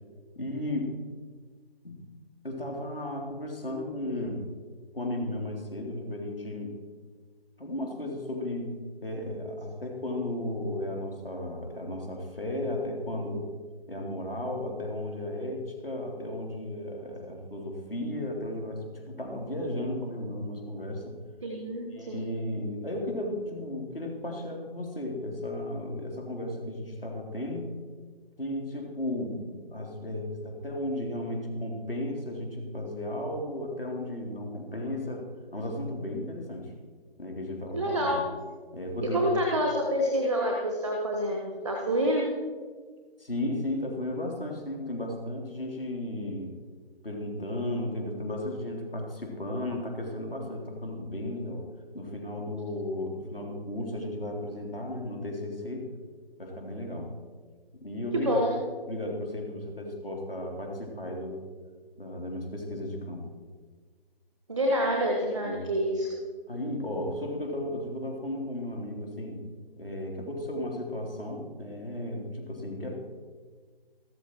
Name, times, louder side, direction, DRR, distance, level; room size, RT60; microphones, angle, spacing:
voice 1, 0.3-0.9 1.8-2.0 2.4-4.4 4.9-6.8 7.6-8.7 9.0-13.5 13.9-21.2 21.9-27.7 28.4-35.2 35.5-36.7 37.2-38.3 38.7-39.2 43.2-46.5 47.0-51.7 51.9-55.9 56.4-57.1 57.7-58.4 58.9-61.4 62.0-63.3 65.4-65.7 66.5-69.4 69.8-72.9, left 1 dB, 65° left, 1 dB, 3.4 m, -34 dB
voice 2, 21.4-22.3 37.7-38.2 39.0-42.3 58.1-58.5 64.5-66.1, equal, 5° left, 1 dB, 0.7 m, -27 dB
14.0 x 13.0 x 4.6 m, 1.5 s
figure-of-eight pair, 155°, 31 cm